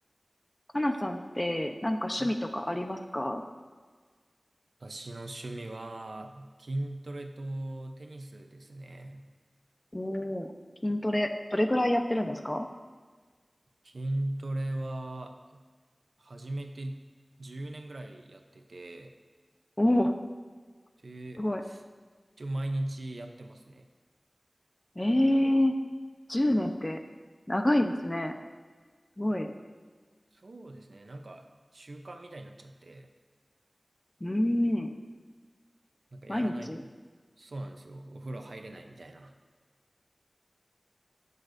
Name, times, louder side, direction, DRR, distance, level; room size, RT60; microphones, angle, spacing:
voice 1, 0.7-3.4 9.9-10.5 10.8-12.7 19.8-20.1 21.4-21.6 25.0-25.7 26.3-27.0 27.5-28.3 29.2-29.5 34.2-34.9 36.3-36.8, left 1 dB, 25° left, 5 dB, 0.9 m, -27 dB
voice 2, 4.8-9.3 13.8-15.6 16.2-17.0 17.4-19.1 21.0-21.8 22.4-23.9 30.3-31.5 31.7-33.1 36.1-36.9 37.4-39.3, right 1 dB, 90° right, 5 dB, 0.7 m, -39 dB
16.5 x 6.7 x 2.7 m, 1.5 s
wide cardioid pair, 45°, 0 cm